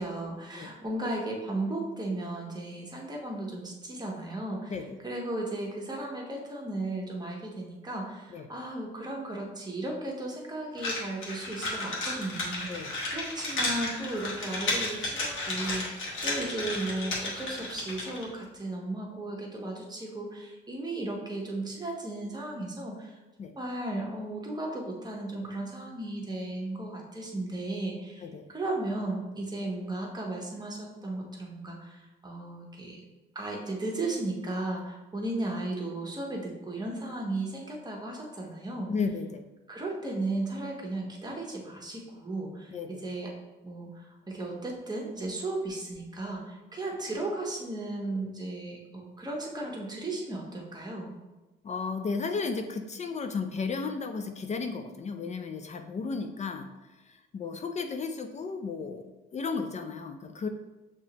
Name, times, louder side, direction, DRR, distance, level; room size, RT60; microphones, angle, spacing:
voice 1, 0.0-33.0 33.3-38.9 39.7-43.3 43.6-51.1, right 2 dB, 20° right, -1 dB, 1.1 m, -35 dB
sound 1, 10.8-18.3, left 2 dB, 75° left, 1.3 m, -33 dB
voice 2, 38.9-39.4 42.7-43.0 51.6-56.7 57.1-60.5, left 4 dB, 35° left, 6 dB, 0.4 m, -34 dB
5.9 x 3.0 x 2.9 m, 1.1 s
cardioid pair, 90°, 20 cm